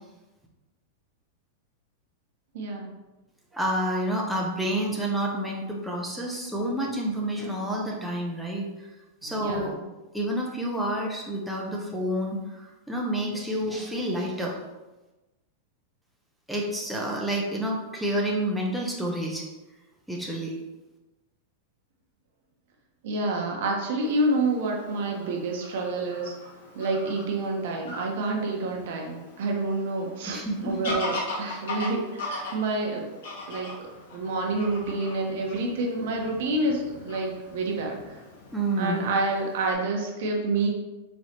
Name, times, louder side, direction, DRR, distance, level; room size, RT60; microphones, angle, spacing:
voice 1, 2.5-2.9 9.2-9.8 23.0-26.3 26.7-33.1 33.5-33.7 34.1-38.2 38.8-40.7, right 2 dB, 65° right, 0 dB, 1.0 m, -28 dB
voice 2, 3.5-8.9 9.2-9.8 10.1-14.5 16.5-19.4 20.1-20.5 30.3-30.8 38.5-39.1, right 1 dB, ahead, -3 dB, 0.6 m, -29 dB
Fowl / Bird vocalization bird call bird song, 24.0-39.7, left 2 dB, 75° left, 1.1 m, -40 dB
4.4 x 3.1 x 2.9 m, 1.1 s
supercardioid pair, 140°, 0 cm